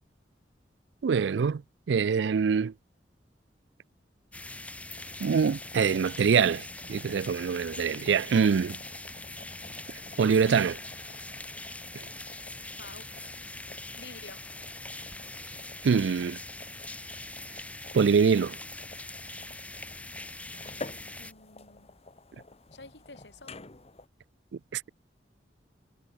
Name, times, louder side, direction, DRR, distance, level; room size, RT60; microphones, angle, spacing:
voice 1, 1.0-1.6 1.9-2.7 5.2-8.8 10.2-10.8 15.8-16.4 17.9-18.6 24.7-24.9, right 6 dB, 85° right, 0.4 m, -24 dB
sound 1, 4.3-21.3, left 2 dB, 10° left, 1.9 m, -42 dB
sound 2, 4.9-24.1, left 2 dB, 35° left, 1.6 m, -50 dB
voice 2, 12.8-13.1 14.0-14.4 21.2-21.9 22.7-23.6, left 3 dB, 90° left, 7.3 m, -49 dB
head